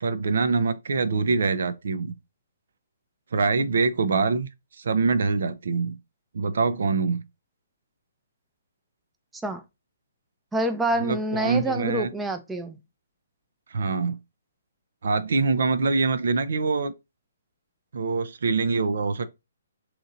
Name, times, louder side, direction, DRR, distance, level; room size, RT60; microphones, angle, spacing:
voice 1, 0.0-2.1 3.3-4.5 4.8-6.0 6.3-7.2 11.0-12.1 13.7-14.2 15.0-16.9 17.9-19.3, right 4 dB, 65° right, 0.4 m, -24 dB
voice 2, 10.5-12.8, right 1 dB, 5° right, 0.5 m, -27 dB
2.9 x 2.5 x 4.0 m
hypercardioid pair, 140°, 0 cm